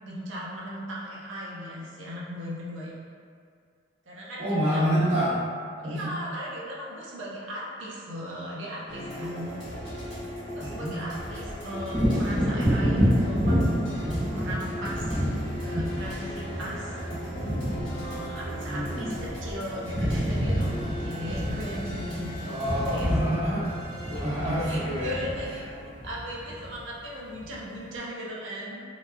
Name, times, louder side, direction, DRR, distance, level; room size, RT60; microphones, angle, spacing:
voice 1, 0.0-2.9 4.1-4.9 5.8-9.6 10.5-15.3 15.6-17.0 17.8-23.1 24.4-25.6 26.0-28.8, equal, 75° right, -5 dB, 0.5 m, -38 dB
voice 2, 4.4-5.4 5.8-6.0 10.6-10.9 18.7-19.1 22.5-23.6 24.1-25.1, equal, 35° right, -14 dB, 1.0 m, -27 dB
sound 1, 8.9-25.8, equal, 75° left, 1.1 m, -38 dB
sound 2, 11.7-24.7, equal, 10° left, 0.6 m, -43 dB
Wind / Thunder, 11.9-19.5 19.7-27.0 27.4-27.5, equal, 60° right, 1.1 m, -28 dB
2.8 x 2.2 x 2.2 m, 2.2 s
head